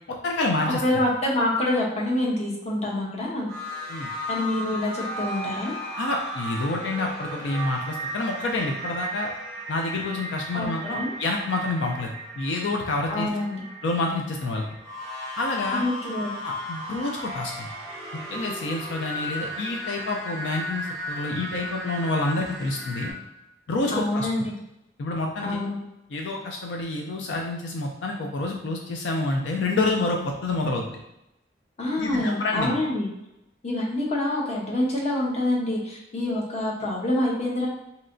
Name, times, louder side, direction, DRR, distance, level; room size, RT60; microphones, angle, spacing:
voice 1, 0.2-0.8 3.9-4.1 6.0-9.3 9.7-13.3 13.8-14.7 15.4-15.8 16.4-17.7 18.1-23.1 23.7-24.3 25.0-25.6 26.1-31.0 32.0-32.7, left 2 dB, 85° left, 1 dB, 0.4 m, -28 dB
voice 2, 0.8-3.5 4.3-5.8 10.5-11.1 13.1-13.7 15.7-16.3 23.9-24.5 25.4-25.8 31.8-33.1 33.6-37.7, left 1 dB, 40° left, -3 dB, 0.8 m, -26 dB
sound 1, 3.5-23.1, equal, 5° left, 0.7 m, -35 dB
3.1 x 2.8 x 2.6 m, 0.88 s
head